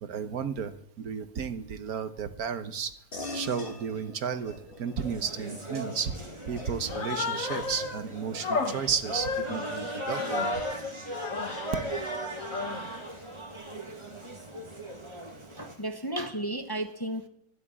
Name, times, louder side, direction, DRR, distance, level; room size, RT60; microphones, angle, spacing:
voice 1, 0.0-2.9 3.3-4.5 4.8-6.1 6.5-10.6, right 7 dB, 75° right, 10 dB, 1.6 m, -33 dB
sound 1, 3.1-13.0, left 2 dB, 35° left, 2.3 m, -47 dB
sound 2, 5.0-15.7, right 1 dB, 20° right, 2.2 m, -37 dB
Human voice, 6.9-8.0 8.4-10.8 11.1-11.7 12.3-13.1, left 4 dB, 60° left, 1.8 m, -34 dB
voice 2, 15.6-17.3, right 1 dB, 15° left, 5 dB, 1.0 m, -33 dB
12.5 x 10.0 x 8.7 m, 0.72 s
omnidirectional pair, 1.6 m